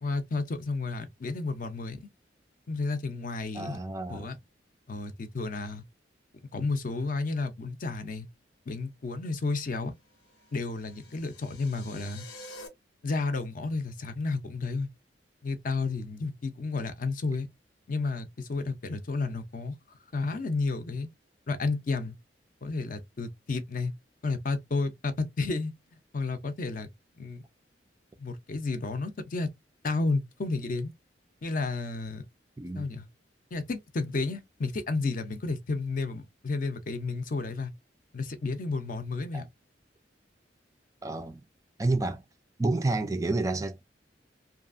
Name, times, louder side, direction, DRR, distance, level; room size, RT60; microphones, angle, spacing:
voice 1, 0.0-2.1 2.7-3.8 4.1-4.4 4.9-5.8 6.5-8.3 8.7-9.9 10.5-12.2 13.0-14.9 15.4-17.5 17.9-19.8 20.1-21.1 21.5-22.2 22.6-23.9 24.2-25.7 26.1-26.9 27.2-27.4 28.2-29.5 29.8-30.9 31.4-32.2 32.7-33.1 33.5-37.7 38.1-39.5, left 3 dB, 50° left, 0.5 m, -31 dB
voice 2, 3.5-4.4 32.6-32.8 39.3-39.5 41.0-41.4 41.8-42.2 42.6-43.8, right 2 dB, 20° right, 0.3 m, -29 dB
sound 1, 10.1-12.7, left 2 dB, 85° left, 0.8 m, -48 dB
2.7 x 2.3 x 2.5 m
head